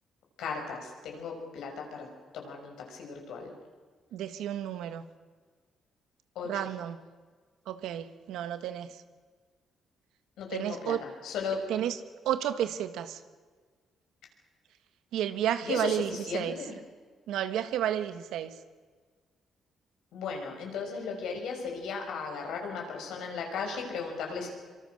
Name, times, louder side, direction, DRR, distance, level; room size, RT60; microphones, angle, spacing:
voice 1, 0.4-2.1 2.3-3.5 6.3-6.6 10.4-11.7 15.6-16.8 20.1-24.5, left 5 dB, 85° left, 2 dB, 6.3 m, -36 dB
voice 2, 4.1-5.0 6.4-7.0 7.7-8.9 10.5-11.0 11.7-12.0 12.2-13.2 15.1-16.6 17.3-18.5, right 11 dB, 85° right, 10 dB, 1.5 m, -31 dB
25.5 x 24.5 x 6.6 m, 1.5 s
cardioid pair, 90°, 0 cm